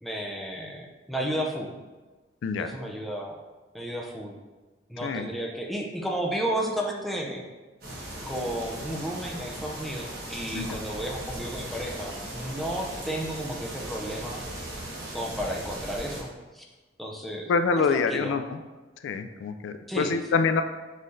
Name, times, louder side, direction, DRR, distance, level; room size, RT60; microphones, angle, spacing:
voice 1, 0.0-1.7 2.6-3.4 3.7-4.4 4.9-7.4 8.3-14.5 15.1-16.6 17.0-17.5 17.8-18.3 19.9-20.1, right 1 dB, ahead, 0 dB, 0.4 m, -33 dB
voice 2, 2.4-2.7 5.0-5.3 10.5-10.8 17.5-18.6 19.0-20.6, left 5 dB, 80° left, 9 dB, 0.3 m, -26 dB
sound 1, 7.8-16.2, right 1 dB, 55° right, 1.3 m, -38 dB
5.5 x 3.1 x 2.6 m, 1.3 s
head